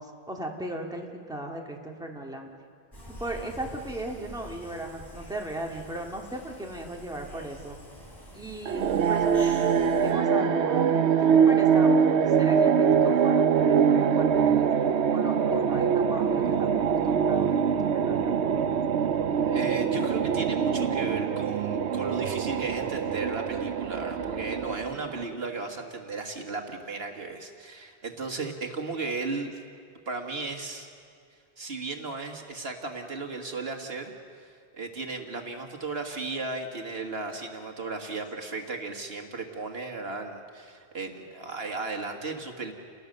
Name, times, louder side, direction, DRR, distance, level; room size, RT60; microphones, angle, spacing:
voice 1, 0.0-2.5 3.2-7.8 8.3-9.6 10.0-14.7 15.1-18.4, right 1 dB, 5° right, 0 dB, 2.1 m, -37 dB
sound 1, 2.9-10.1, equal, 20° left, 3.8 m, -46 dB
sound 2, 8.7-25.2, right 7 dB, 85° right, 1.0 m, -24 dB
voice 2, 19.4-29.6 30.1-30.9 31.6-34.1 34.4-34.5 34.7-42.7, right 3 dB, 70° right, 3 dB, 1.9 m, -35 dB
30.0 x 19.5 x 6.6 m, 2.2 s
omnidirectional pair, 1.1 m